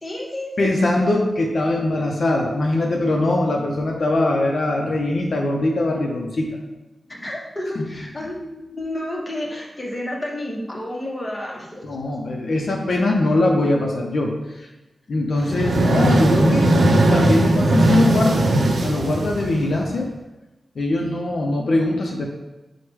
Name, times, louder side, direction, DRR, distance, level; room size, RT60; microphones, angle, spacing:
voice 1, 0.0-0.7 7.1-11.9 15.4-15.7, left 1 dB, 20° left, -2 dB, 0.8 m, -31 dB
voice 2, 0.6-6.5 7.8-7.9 11.8-14.7 15.1-16.7 17.1-18.5 18.8-20.1 20.8-22.2, left 2 dB, 70° left, 0 dB, 0.5 m, -21 dB
sound 1, 15.4-19.9, right 1 dB, 80° right, 0.5 m, -18 dB
4.6 x 2.1 x 4.6 m, 1.0 s
wide cardioid pair, 115°, 0 cm